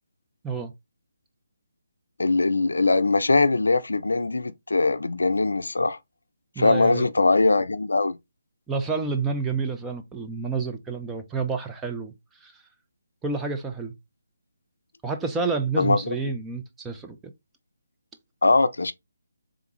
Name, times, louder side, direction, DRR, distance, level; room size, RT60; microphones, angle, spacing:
voice 1, 2.2-6.0 6.6-8.2 15.8-16.2 18.4-18.9, left 3 dB, 75° left, 0.4 m, -21 dB
voice 2, 6.6-7.1 8.7-12.1 12.4-12.6 13.2-13.9 15.0-17.3, right 4 dB, 10° right, 0.5 m, -29 dB
3.7 x 3.5 x 3.0 m
figure-of-eight pair, 150°, 0 cm